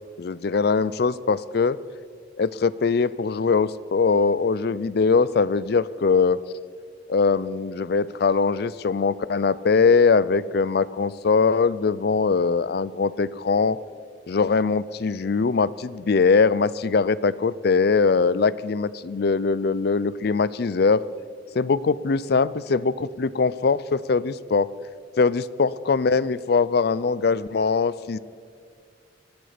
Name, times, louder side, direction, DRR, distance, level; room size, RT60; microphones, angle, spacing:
voice 1, 0.2-1.8 2.4-6.4 7.1-13.8 14.3-21.0 21.5-24.7 25.2-28.2, left 4 dB, 55° left, 19 dB, 0.4 m, -21 dB
19.5 x 14.0 x 5.0 m, 2.1 s
head